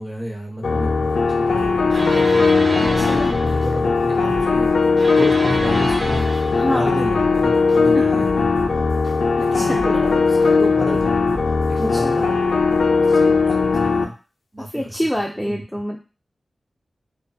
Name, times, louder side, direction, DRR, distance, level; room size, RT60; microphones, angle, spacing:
voice 1, 0.0-2.4 2.7-4.7 5.1-8.7 9.4-11.3 11.7-14.1 14.5-14.7 15.4-15.6, equal, 25° right, 0 dB, 0.7 m, -31 dB
sound 1, 0.6-14.0, left 4 dB, 85° left, 0.3 m, -18 dB
sound 2, 1.6-2.3 2.8-3.7 4.1-5.1 5.5-6.4 6.9-7.8 8.2-9.1 9.6-10.5 10.9-11.8 12.3-12.4, equal, 60° right, 0.9 m, -36 dB
sound 3, 1.9-3.7 5.0-6.7, right 1 dB, 85° right, 1.0 m, -28 dB
voice 2, 3.0-3.4 6.5-7.0 7.9-8.2 9.4-9.9 11.9-12.2 14.7-16.0, equal, 5° left, -1 dB, 0.3 m, -26 dB
2.4 x 2.1 x 2.6 m, 0.33 s
wide cardioid pair, 70°, 0 cm